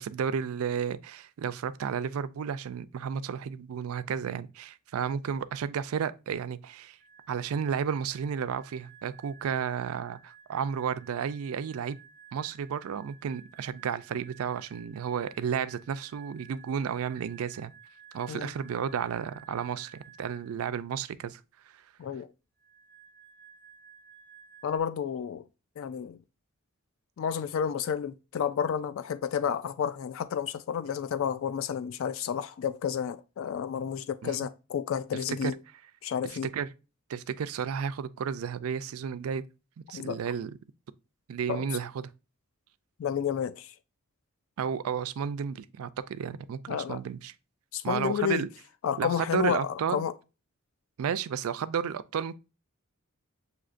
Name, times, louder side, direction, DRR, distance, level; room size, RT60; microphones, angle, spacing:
voice 1, 0.0-7.0 7.3-12.0 12.3-17.7 18.1-21.4 21.7-21.8 34.2-34.5 35.4-35.5 36.2-36.7 37.1-39.4 39.9-40.6 41.3-42.1 44.6-47.3 47.8-48.5 49.0-50.1 51.0-52.4, right 7 dB, 80° right, 0.4 m, -32 dB
sound 1, 7.0-20.7 22.6-24.8, right 6 dB, 5° left, 0.6 m, -55 dB
voice 2, 22.0-22.3 24.6-25.4 25.8-26.2 27.2-35.5 36.0-36.5 39.9-40.2 41.5-41.7 43.0-43.7 46.7-47.0 47.7-48.5 48.8-50.1, left 8 dB, 65° left, 0.3 m, -31 dB
7.4 x 2.8 x 2.5 m
head